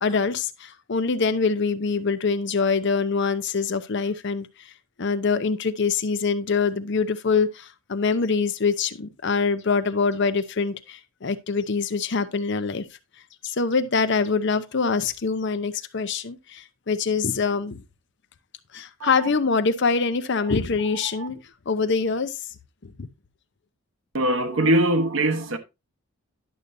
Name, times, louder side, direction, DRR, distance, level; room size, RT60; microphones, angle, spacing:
voice 1, 0.0-4.5 5.0-12.9 13.4-17.8 18.7-21.4 21.7-22.4 22.8-23.1, left 4 dB, 55° left, 0.7 m, -24 dB
voice 2, 24.1-25.6, right 1 dB, 70° right, 1.1 m, -22 dB
10.5 x 6.7 x 2.6 m
head